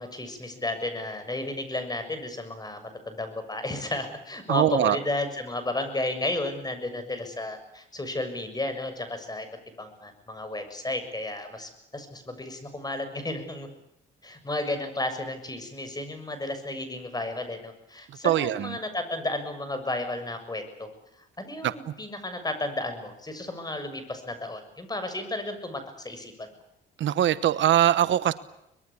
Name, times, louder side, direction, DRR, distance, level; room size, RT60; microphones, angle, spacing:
voice 1, 0.0-9.5 9.8-13.7 14.2-20.9 21.4-26.5, left 2 dB, 20° left, 9 dB, 6.9 m, -33 dB
voice 2, 4.5-5.0 18.2-18.8 21.6-21.7 27.0-28.3, right 11 dB, 70° right, 15 dB, 1.1 m, -22 dB
24.5 x 21.5 x 8.5 m, 0.82 s
cardioid pair, 90°, 20 cm